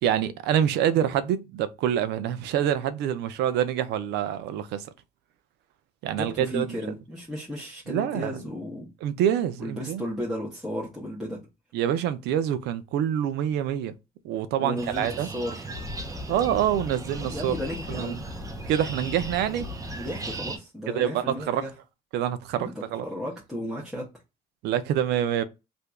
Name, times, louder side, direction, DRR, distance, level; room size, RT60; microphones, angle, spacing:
voice 1, 0.0-4.9 6.0-6.8 7.9-8.4 9.0-10.0 11.7-13.9 14.2-15.3 16.3-17.5 17.9-18.2 18.7-19.7 20.9-21.6 22.1-23.1 24.6-25.4, right 10 dB, 85° right, 0.5 m, -26 dB
voice 2, 6.1-8.9 9.6-11.4 14.6-15.7 17.2-18.2 19.9-21.7 22.5-22.7 23.0-24.1, equal, ahead, 1.0 m, -34 dB
sound 1, 14.8-20.6, right 3 dB, 20° right, 0.6 m, -37 dB
sound 2, 15.7-20.4, left 5 dB, 55° left, 0.6 m, -41 dB
2.8 x 2.6 x 3.4 m
cardioid pair, 110°, 17 cm